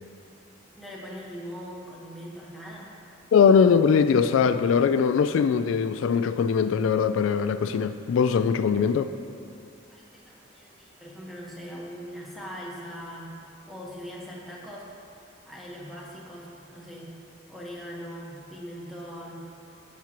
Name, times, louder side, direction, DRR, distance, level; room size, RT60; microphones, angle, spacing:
voice 1, 0.7-2.9 9.9-13.4 13.7-14.9 15.5-17.1 17.5-19.5, equal, ahead, 1.2 m, -41 dB
voice 2, 3.3-9.1, left 6 dB, 80° left, 0.3 m, -21 dB
15.0 x 6.1 x 3.0 m
head